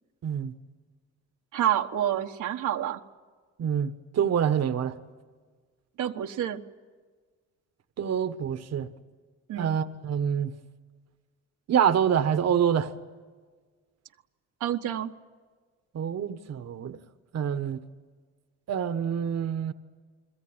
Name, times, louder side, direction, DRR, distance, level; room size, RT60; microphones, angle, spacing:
voice 1, 0.2-0.5 3.6-5.0 8.0-8.9 9.6-10.5 11.7-12.9 15.9-17.0 17.3-17.8 18.7-19.7, right 8 dB, 55° right, 1.3 m, -26 dB
voice 2, 1.5-3.0 6.0-6.6 9.5-9.8 14.6-15.1, right 11 dB, 80° right, 1.4 m, -28 dB
29.5 x 22.0 x 8.9 m
cardioid pair, 90°, 30 cm